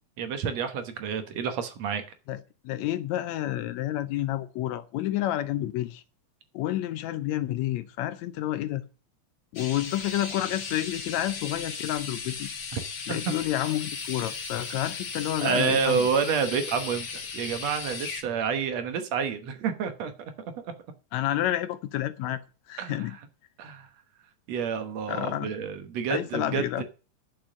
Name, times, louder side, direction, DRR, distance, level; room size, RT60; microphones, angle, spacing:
voice 1, 0.2-2.0 12.7-12.8 13.1-13.3 15.4-20.1 20.6-20.7 22.8-23.2 23.6-23.9 24.5-26.8, right 6 dB, 65° right, 2.2 m, -29 dB
voice 2, 2.3-6.0 6.5-8.8 9.5-12.5 13.1-16.0 21.1-22.4 22.7-23.2 25.1-25.5 26.1-26.8, left 13 dB, 75° left, 1.9 m, -29 dB
sound 1, 9.6-18.2, left 5 dB, 45° left, 1.6 m, -36 dB
9.2 x 7.1 x 6.2 m
omnidirectional pair, 3.4 m